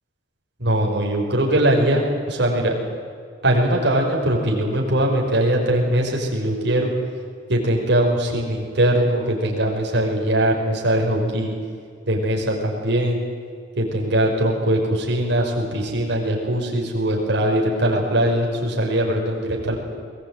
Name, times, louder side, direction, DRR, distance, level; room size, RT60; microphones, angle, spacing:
voice 1, 0.6-2.8 3.4-6.9 7.5-11.5 12.1-13.2 13.8-19.8, right 1 dB, 65° right, -1 dB, 5.7 m, -21 dB
22.0 x 20.5 x 9.2 m, 2.1 s
head